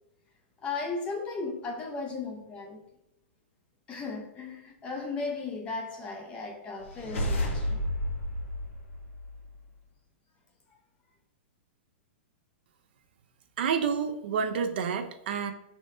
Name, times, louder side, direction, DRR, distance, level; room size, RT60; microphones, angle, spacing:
voice 1, 0.6-2.8 3.9-7.8, left 3 dB, 15° left, 0.5 m, -36 dB
sound 1, 6.8-9.6, equal, 85° left, 1.1 m, -32 dB
voice 2, 13.6-15.5, right 6 dB, 55° right, 0.4 m, -29 dB
5.2 x 3.4 x 2.7 m
supercardioid pair, 165°, 7 cm